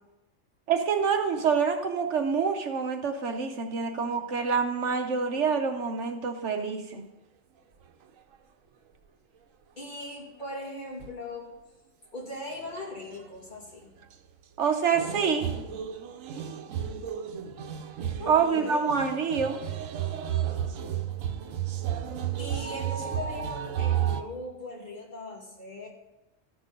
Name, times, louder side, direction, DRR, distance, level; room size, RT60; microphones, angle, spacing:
voice 1, 0.7-7.0 14.6-15.5 18.3-19.6, right 6 dB, 65° right, 5 dB, 1.1 m, -26 dB
voice 2, 9.8-11.5 12.1-14.0 18.2-18.8 22.4-25.9, left 1 dB, 35° left, -3 dB, 2.6 m, -39 dB
sound 1, 11.0-11.1 12.6-12.8 13.1-13.2 14.9-24.2, right 9 dB, 90° right, 1.1 m, -32 dB
13.5 x 6.0 x 5.1 m, 0.97 s
omnidirectional pair, 1.3 m